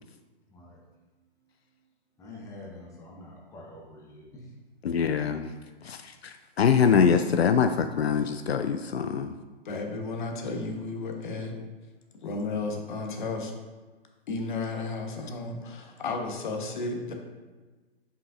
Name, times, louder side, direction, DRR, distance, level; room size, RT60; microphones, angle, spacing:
voice 1, 0.5-0.8 1.4-1.5 2.2-4.5, left 2 dB, 10° left, -3 dB, 1.0 m, -46 dB
voice 2, 4.8-5.6 5.8-9.3, left 6 dB, 80° left, 7 dB, 0.5 m, -24 dB
voice 3, 9.6-11.5 12.2-13.5 14.3-17.1, left 3 dB, 50° left, 3 dB, 1.1 m, -33 dB
7.1 x 5.6 x 2.5 m, 1.3 s
figure-of-eight pair, 125°, 31 cm